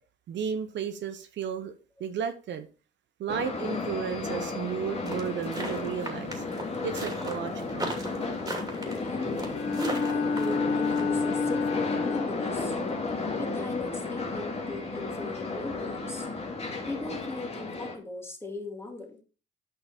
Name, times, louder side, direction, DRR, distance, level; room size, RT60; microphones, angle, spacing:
voice 1, 0.3-1.7 2.0-2.7 3.2-6.4 6.8-8.0, right 7 dB, 65° right, 0.9 m, -33 dB
sound 1, 3.3-18.0, left 3 dB, 30° left, 2.2 m, -33 dB
sound 2, 5.1-11.0, right 1 dB, 20° right, 2.7 m, -36 dB
voice 2, 9.0-9.4 9.7-12.7 13.4-16.3 16.9-19.2, left 2 dB, 10° left, 2.4 m, -38 dB
Bowed string instrument, 9.5-12.5, left 4 dB, 85° left, 2.0 m, -29 dB
8.7 x 5.8 x 4.3 m
cardioid pair, 90°, 20 cm